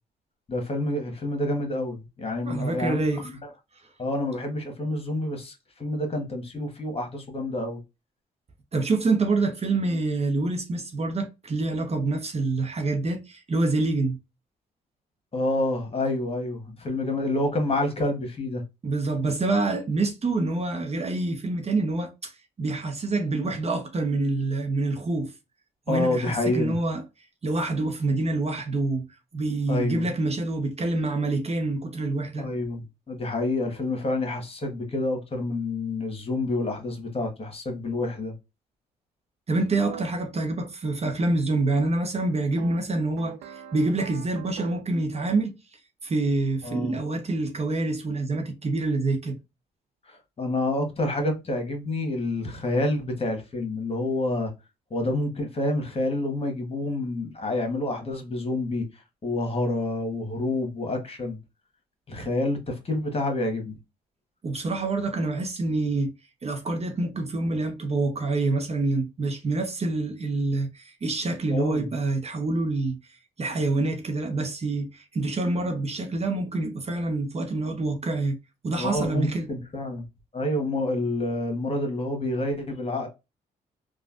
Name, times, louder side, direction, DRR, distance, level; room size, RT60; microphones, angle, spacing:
voice 1, 0.5-3.3 4.0-5.5 5.8-7.8 15.3-18.6 25.9-26.8 29.7-30.1 32.4-38.3 46.6-47.0 50.1-54.5 54.9-58.8 59.2-61.4 62.1-63.7 71.5-71.9 78.8-80.0 80.3-83.1, left 2 dB, 35° left, 1.4 m, -28 dB
voice 2, 2.4-3.3 8.7-14.2 18.8-22.3 22.6-25.3 25.9-27.0 27.4-29.1 29.3-32.5 39.5-45.5 46.0-49.4 64.4-66.1 66.4-73.0 73.4-78.4 78.6-79.5, right 2 dB, 35° right, 0.8 m, -26 dB
sound 1, 39.8-40.0 42.6-45.0, right 10 dB, 75° right, 0.5 m, -41 dB
3.1 x 2.5 x 2.4 m
supercardioid pair, 60°, 18 cm